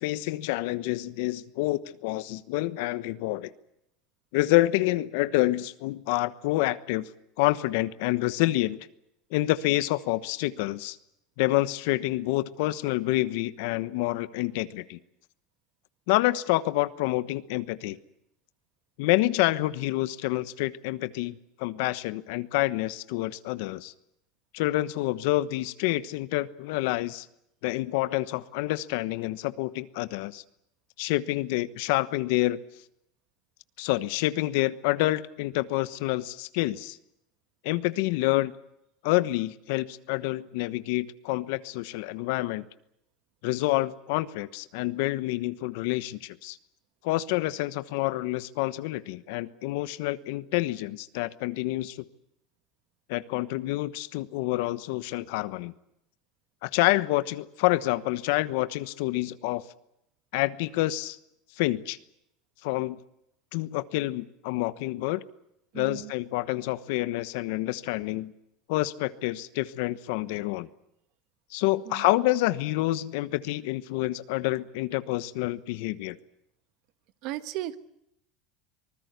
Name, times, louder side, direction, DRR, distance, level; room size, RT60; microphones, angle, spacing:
voice 1, 0.0-3.5 4.3-7.1 7.4-8.8 9.3-11.0 11.4-15.0 16.1-18.0 19.0-23.9 24.5-27.3 27.6-30.4 31.0-32.6 33.8-37.0 37.6-38.5 39.0-42.7 43.4-46.6 47.0-52.0 53.1-55.7 56.6-59.6 60.3-61.2 61.6-62.0 62.6-63.0 63.5-65.2 65.7-68.3 68.7-70.7 71.5-76.2, left 18 dB, 75° left, 14 dB, 1.1 m, -28 dB
voice 2, 65.7-66.1 71.8-72.1 77.2-77.8, right 15 dB, 60° right, 12 dB, 1.4 m, -35 dB
25.0 x 19.5 x 8.2 m, 0.79 s
supercardioid pair, 125°, 0 cm